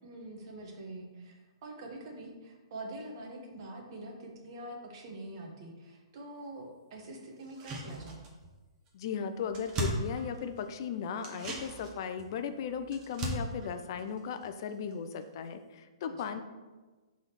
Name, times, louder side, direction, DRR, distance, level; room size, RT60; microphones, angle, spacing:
voice 1, 0.0-8.2, right 1 dB, 50° right, 1 dB, 1.3 m, -45 dB
sound 1, 7.4-8.6 8.9-9.0 9.2-10.7 11.2-14.9 15.2-15.3, right 1 dB, 25° right, 1.1 m, -39 dB
voice 2, 8.9-16.4, left 7 dB, 50° left, 9 dB, 0.5 m, -36 dB
5.0 x 4.0 x 5.8 m, 1.3 s
hypercardioid pair, 150°, 3 cm